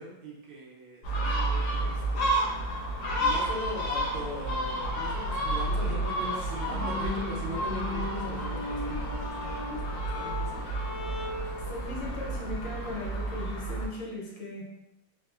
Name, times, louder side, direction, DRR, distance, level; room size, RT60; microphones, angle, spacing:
voice 1, 0.0-2.8 3.1-10.7, right 1 dB, 80° right, -4 dB, 1.5 m, -40 dB
Gull seagull, 1.0-13.9, right 1 dB, 55° left, 0.9 m, -31 dB
sound 1, 6.6-11.6, left 2 dB, 85° left, 1.4 m, -38 dB
voice 2, 11.7-14.7, left 2 dB, 70° left, -5 dB, 1.6 m, -38 dB
4.0 x 2.4 x 2.4 m, 0.94 s
omnidirectional pair, 2.1 m